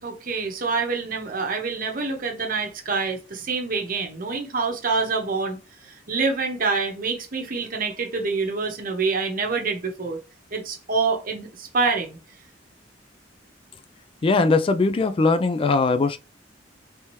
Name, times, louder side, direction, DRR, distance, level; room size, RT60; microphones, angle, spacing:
voice 1, 0.0-5.6 5.9-10.2 10.5-12.2, right 4 dB, 50° right, 0.9 m, -26 dB
voice 2, 14.2-16.2, left 3 dB, 30° left, 0.3 m, -20 dB
3.4 x 2.8 x 3.1 m
head